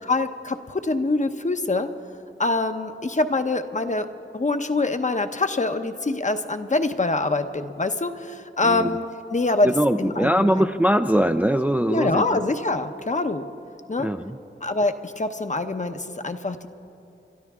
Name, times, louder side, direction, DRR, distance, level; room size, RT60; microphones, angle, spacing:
voice 1, 0.0-1.9 2.4-4.1 4.3-9.0 9.3-10.7 11.9-13.4 13.9-14.1 14.6-16.7, left 2 dB, 35° left, 8 dB, 0.8 m, -25 dB
voice 2, 9.6-12.2 14.0-14.4, equal, 10° right, 8 dB, 0.4 m, -21 dB
28.0 x 12.5 x 3.6 m, 2.8 s
wide cardioid pair, 65°, 21 cm